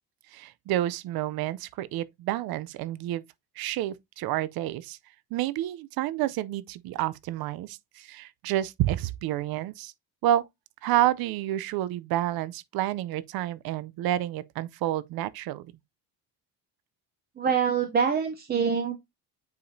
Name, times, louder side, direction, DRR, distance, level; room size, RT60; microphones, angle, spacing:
voice 1, 0.3-3.2 3.6-5.0 5.3-9.9 10.2-10.4 10.8-15.7, right 13 dB, 70° right, 0.6 m, -29 dB
voice 2, 17.4-19.0, right 6 dB, 25° right, 0.6 m, -25 dB
8.2 x 4.8 x 2.6 m
cardioid pair, 175°, 37 cm